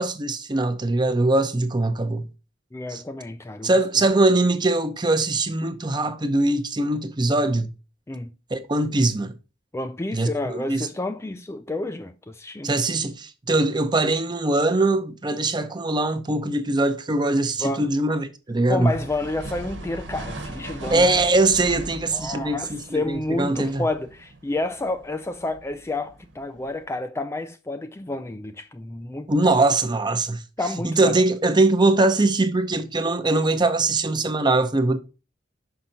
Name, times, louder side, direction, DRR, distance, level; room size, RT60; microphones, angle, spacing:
voice 1, 0.0-2.3 2.9-3.0 3.6-7.7 8.5-9.3 10.1-10.9 12.6-18.9 20.9-23.9 29.3-30.4 30.8-35.0, right 2 dB, 25° right, 0.7 m, -22 dB
voice 2, 2.7-3.8 8.1-8.3 9.7-12.8 17.6-17.9 18.7-21.1 22.1-29.6 30.6-31.2, left 2 dB, 15° left, 0.4 m, -30 dB
sound 1, 18.8-26.8, right 1 dB, 85° right, 1.3 m, -39 dB
5.8 x 5.6 x 3.9 m
head